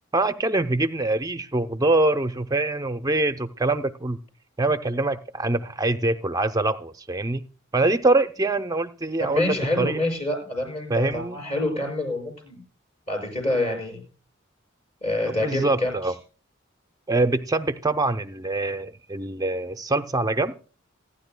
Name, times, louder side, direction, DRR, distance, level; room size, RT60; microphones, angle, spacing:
voice 1, 0.1-4.2 4.6-7.4 7.7-10.0 10.9-11.4 15.3-16.1 17.1-20.5, right 2 dB, 15° right, 9 dB, 0.6 m, -24 dB
voice 2, 9.2-12.6 13.1-14.0 15.0-15.9, left 1 dB, 30° left, 1 dB, 6.5 m, -27 dB
27.5 x 10.0 x 2.2 m, 0.38 s
head